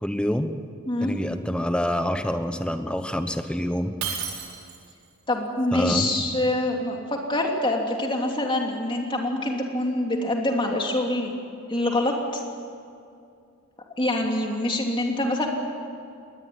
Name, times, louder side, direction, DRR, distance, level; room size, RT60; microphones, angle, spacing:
voice 1, 0.0-0.7 1.0-4.0 5.7-6.1, equal, 5° left, 8 dB, 1.1 m, -26 dB
voice 2, 0.9-1.2 5.3-11.4 11.7-12.4 14.0-15.5, left 1 dB, 20° left, 1 dB, 2.9 m, -25 dB
Shatter, 4.0-5.0, right 7 dB, 80° right, 3.7 m, -32 dB
21.5 x 19.0 x 9.5 m, 2.4 s
head